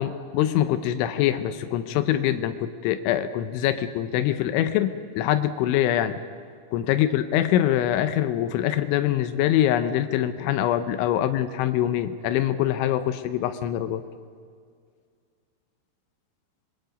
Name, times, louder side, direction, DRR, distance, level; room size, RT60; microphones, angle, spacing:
voice 1, 0.0-6.2 6.7-14.0, left 12 dB, 85° left, 10 dB, 3.2 m, -24 dB
26.5 x 22.5 x 5.2 m, 2.1 s
omnidirectional pair, 5.3 m